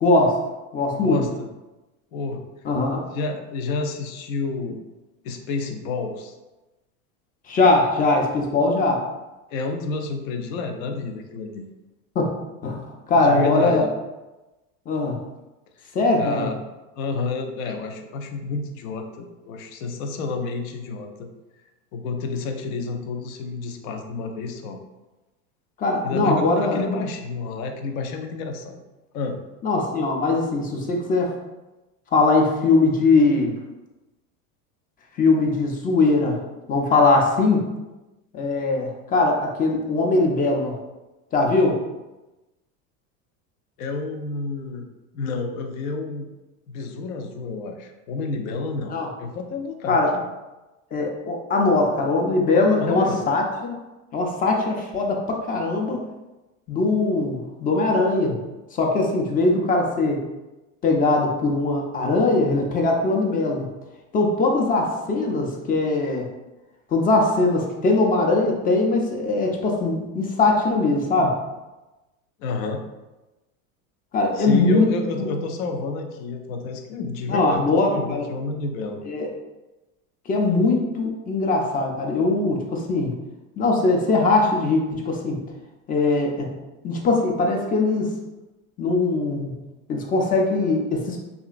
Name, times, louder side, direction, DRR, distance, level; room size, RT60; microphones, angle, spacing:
voice 1, 0.0-0.4 0.7-1.2 2.6-3.0 7.5-9.1 12.2-12.3 12.6-13.8 14.9-15.2 15.9-16.5 25.8-26.8 29.6-31.3 32.1-33.5 35.2-36.4 36.7-37.6 38.3-40.7 41.3-41.8 48.9-49.1 49.9-50.1 50.9-53.8 54.1-56.0 56.7-58.3 58.7-60.2 60.8-63.7 64.1-66.3 66.9-71.4 74.1-74.9 75.2-75.3 77.3-78.3 79.0-79.3 80.3-83.1 83.6-85.4 85.9-86.5 86.8-88.1 88.8-89.5 89.9-91.2, left 3 dB, 20° left, 0 dB, 0.4 m, -21 dB
voice 2, 0.9-1.5 2.1-2.4 3.1-4.8 5.2-6.3 9.5-11.7 13.1-13.9 15.8-16.6 17.0-21.3 21.9-24.8 26.0-28.8 29.1-29.4 43.8-44.9 45.1-46.3 46.7-48.9 49.2-50.2 52.8-53.3 72.4-72.8 74.3-79.1, left 3 dB, 75° left, 5 dB, 0.6 m, -30 dB
2.8 x 2.4 x 2.4 m, 1.1 s
supercardioid pair, 100°, 42 cm